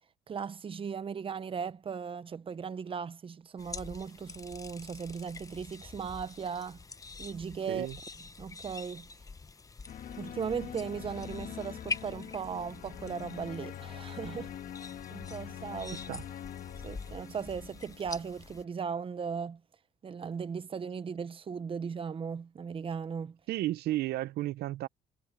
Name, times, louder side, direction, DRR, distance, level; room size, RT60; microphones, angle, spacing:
voice 1, 0.3-6.8 7.2-7.9 8.4-9.1 10.2-14.5 15.1-16.0 16.8-19.6 20.0-23.4, right 6 dB, 30° right, 0.9 m, -37 dB
sound 1, 3.6-18.6, left 4 dB, 20° left, 0.9 m, -45 dB
sound 2, 9.9-18.7, left 10 dB, 55° left, 1.6 m, -44 dB
voice 2, 15.9-16.2 23.5-24.9, right 15 dB, 70° right, 0.7 m, -33 dB
cardioid pair, 110°, 17 cm